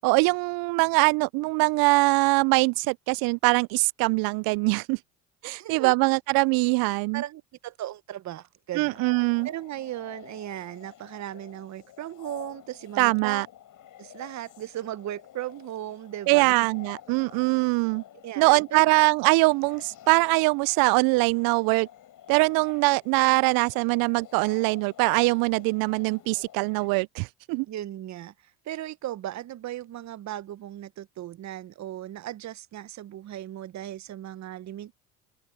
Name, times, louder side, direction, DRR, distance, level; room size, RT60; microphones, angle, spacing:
voice 1, 0.0-5.0 5.4-7.2 8.8-9.5 13.0-13.5 16.3-18.0 18.4-21.9 22.3-27.7, right 27 dB, 60° right, 0.6 m, -22 dB
voice 2, 5.4-5.9 7.1-9.0 9.4-13.4 14.0-16.7 18.2-18.9 27.7-34.9, right 13 dB, 45° right, 1.0 m, -37 dB
sound 1, 8.7-26.9, left 11 dB, 50° left, 6.8 m, -50 dB
open air
hypercardioid pair, 70°, 40 cm